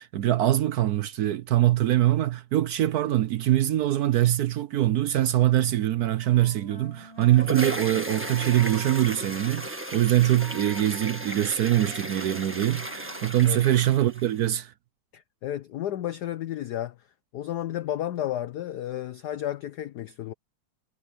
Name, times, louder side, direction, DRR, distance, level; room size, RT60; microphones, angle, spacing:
voice 1, 0.0-14.7, right 13 dB, 70° right, 0.9 m, -23 dB
Wind instrument woodwind instrument, 6.2-13.5, equal, 30° right, 6.9 m, -47 dB
sound 1, 7.0-14.5, right 1 dB, 5° right, 1.4 m, -35 dB
voice 2, 15.1-16.9 17.3-20.3, left 12 dB, 65° left, 1.0 m, -32 dB
omnidirectional pair, 2.3 m